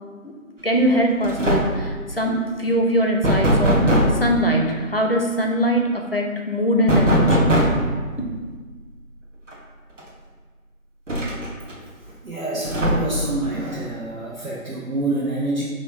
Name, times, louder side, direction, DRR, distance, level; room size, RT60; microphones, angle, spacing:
voice 1, 0.6-3.9 4.1-7.6 8.2-8.3, equal, 45° left, 1 dB, 0.5 m, -22 dB
sound 1, 0.8-1.0 1.2-1.9 3.2-4.2 6.9-7.9 9.5-9.6 10.0-10.1 11.1-11.7 12.7-13.3, equal, 60° right, 0.8 m, -19 dB
voice 2, 12.2-15.6, right 2 dB, 85° right, -6 dB, 1.1 m, -26 dB
5.1 x 2.2 x 4.6 m, 1.5 s
figure-of-eight pair, 170°, 42 cm